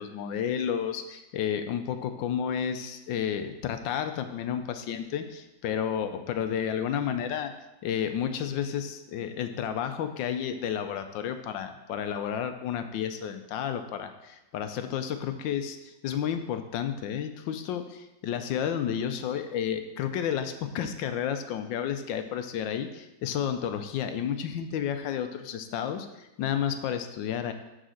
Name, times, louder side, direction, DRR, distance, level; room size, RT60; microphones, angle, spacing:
voice 1, 0.0-7.5 7.8-27.5, left 8 dB, 80° left, 8 dB, 1.3 m, -31 dB
6.4 x 5.0 x 6.3 m, 0.98 s
omnidirectional pair, 2.1 m